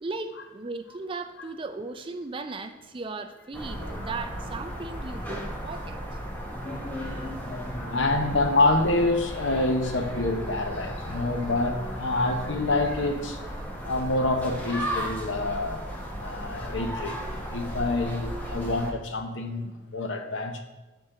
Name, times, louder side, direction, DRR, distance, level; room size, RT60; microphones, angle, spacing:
voice 1, 0.0-6.0, right 3 dB, 25° right, 7 dB, 0.4 m, -36 dB
sound 1, 3.5-18.9, equal, 10° left, 0.8 m, -35 dB
voice 2, 7.5-13.4 13.8-15.8 16.1-20.6, left 2 dB, 70° left, 5 dB, 0.8 m, -27 dB
7.5 x 4.5 x 3.7 m, 1.1 s
head